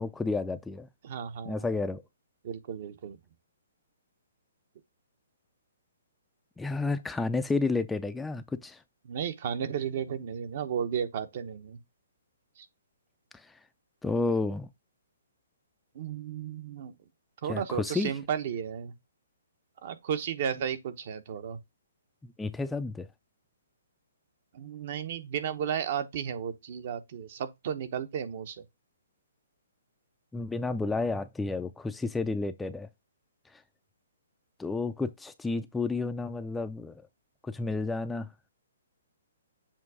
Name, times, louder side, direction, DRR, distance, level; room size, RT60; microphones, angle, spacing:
voice 1, 0.0-0.9 1.5-2.0 6.6-8.8 13.3-13.6 14.0-14.7 17.5-18.1 22.4-23.1 30.3-32.9 33.5-33.6 34.6-37.0 37.4-38.3, left 3 dB, 5° left, 0.4 m, -31 dB
voice 2, 1.0-1.7 2.4-3.2 9.0-11.8 12.6-12.7 15.9-16.9 17.4-18.9 19.8-21.6 24.5-28.6, right 8 dB, 50° right, 0.9 m, -34 dB
7.4 x 2.7 x 4.7 m
hypercardioid pair, 145°, 0 cm